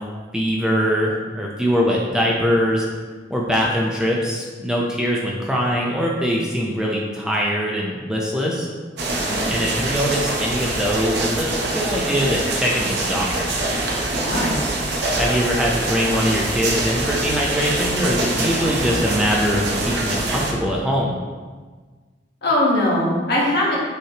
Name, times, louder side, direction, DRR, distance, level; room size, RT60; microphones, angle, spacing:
voice 1, 0.3-2.8 3.3-8.7 9.5-13.5 15.2-21.1, equal, 5° right, -3 dB, 0.5 m, -22 dB
sound 1, 9.0-20.5, right 2 dB, 65° right, 0.7 m, -24 dB
voice 2, 14.2-14.6 22.4-23.8, left 1 dB, 65° left, -5 dB, 1.3 m, -20 dB
6.3 x 2.9 x 2.8 m, 1.4 s
head